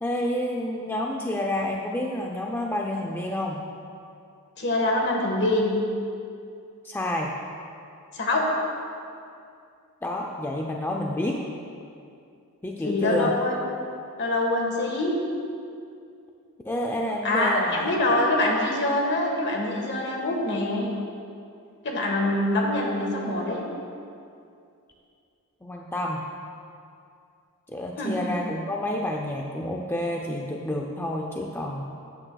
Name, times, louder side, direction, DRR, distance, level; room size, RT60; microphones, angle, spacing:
voice 1, 0.0-3.6 6.8-7.3 10.0-11.4 12.6-13.3 16.6-17.9 25.6-26.2 27.7-31.8, left 1 dB, 10° left, 0 dB, 0.4 m, -29 dB
voice 2, 4.6-5.7 8.1-8.4 12.8-13.6 14.2-15.1 17.2-20.9 21.8-23.6 28.0-28.2, left 1 dB, 55° left, 0 dB, 1.4 m, -24 dB
12.5 x 8.9 x 2.3 m, 2.5 s
head